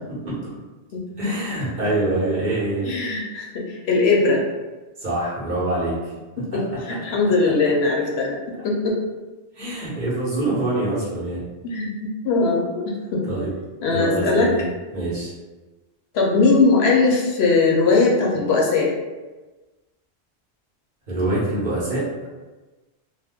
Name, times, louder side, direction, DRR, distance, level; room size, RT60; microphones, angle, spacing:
voice 1, 1.2-2.9 5.0-5.9 6.5-6.6 9.6-11.4 13.2-13.5 13.9-14.6 14.9-15.3 21.1-22.0, right 2 dB, 45° right, -8 dB, 1.1 m, -25 dB
voice 2, 2.8-4.4 6.4-6.6 6.9-8.4 8.6-9.0 11.6-13.2 13.8-14.5 16.1-18.9, left 3 dB, 75° left, -2 dB, 0.9 m, -20 dB
2.7 x 2.1 x 3.5 m, 1.2 s
omnidirectional pair, 1.1 m